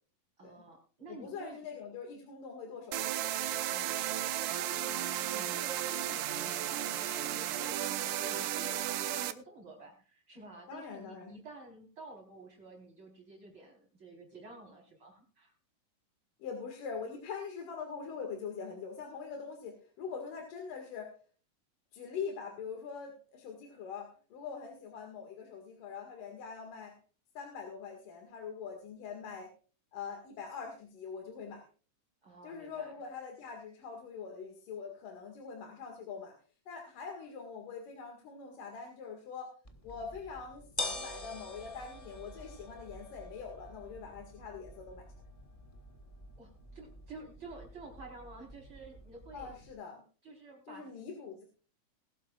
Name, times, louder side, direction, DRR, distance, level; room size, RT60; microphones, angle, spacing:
voice 1, 0.4-1.6 3.7-15.5 32.2-32.9 46.4-49.5 50.2-50.9, right 3 dB, 40° right, -1 dB, 4.8 m, -51 dB
voice 2, 1.1-3.2 10.7-11.4 16.4-21.1 21.9-26.9 27.4-29.5 29.9-31.7 32.4-36.3 36.7-39.5 39.8-45.0 49.3-50.0 50.7-51.5, left 6 dB, 80° left, 3 dB, 3.6 m, -43 dB
sound 1, 2.9-9.3, right 12 dB, 80° right, 2.4 m, -34 dB
sound 2, 39.6-49.7, left 2 dB, 35° left, 0.5 m, -46 dB
21.0 x 12.0 x 2.4 m, 0.39 s
omnidirectional pair, 3.7 m